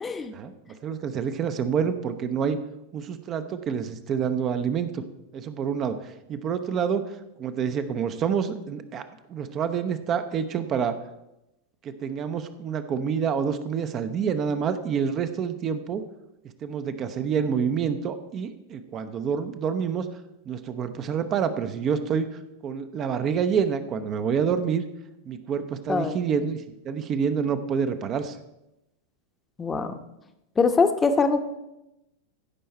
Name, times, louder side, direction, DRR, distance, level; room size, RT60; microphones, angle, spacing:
voice 1, 0.0-0.3 25.9-26.1 29.6-29.9 30.6-31.4, left 4 dB, 15° left, 7 dB, 0.9 m, -22 dB
voice 2, 0.8-2.6 2.9-5.0 5.3-7.0 7.4-11.0 11.8-16.0 16.6-20.1 20.4-22.3 22.6-24.8 25.2-28.4, right 7 dB, 30° right, 10 dB, 0.8 m, -27 dB
15.5 x 5.6 x 4.3 m, 0.90 s
figure-of-eight pair, 90°, 0 cm